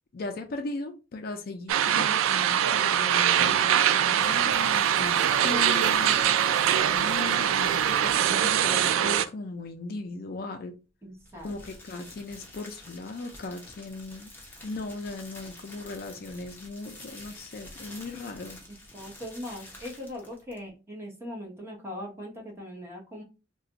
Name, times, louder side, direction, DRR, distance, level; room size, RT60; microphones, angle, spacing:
voice 1, 0.1-6.2 6.8-10.7 11.4-14.3 14.6-18.6, left 3 dB, 50° left, 0.4 m, -37 dB
sound 1, 1.7-9.2, right 9 dB, 90° right, 0.3 m, -23 dB
Crunching Sound, 4.2-8.7 11.1-20.7, left 1 dB, 10° left, 0.7 m, -48 dB
voice 2, 11.0-11.6 18.7-23.2, left 1 dB, 15° right, 0.9 m, -40 dB
2.5 x 2.2 x 3.9 m
head